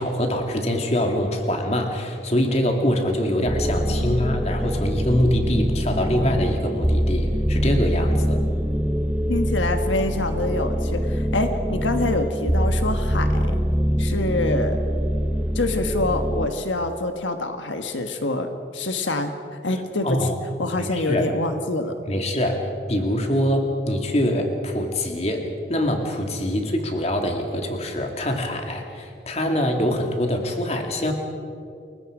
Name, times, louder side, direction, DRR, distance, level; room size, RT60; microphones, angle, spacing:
voice 1, 0.0-8.4 20.0-20.4 20.8-21.2 22.1-31.1, left 1 dB, 35° left, 3 dB, 2.4 m, -24 dB
sound 1, 3.4-16.5, equal, 5° right, 0.7 m, -24 dB
voice 2, 3.6-4.4 9.3-13.5 14.0-14.8 15.5-19.3 19.6-20.2 20.6-21.9, left 2 dB, 85° left, 6 dB, 1.5 m, -26 dB
29.0 x 22.0 x 5.1 m, 2.6 s
head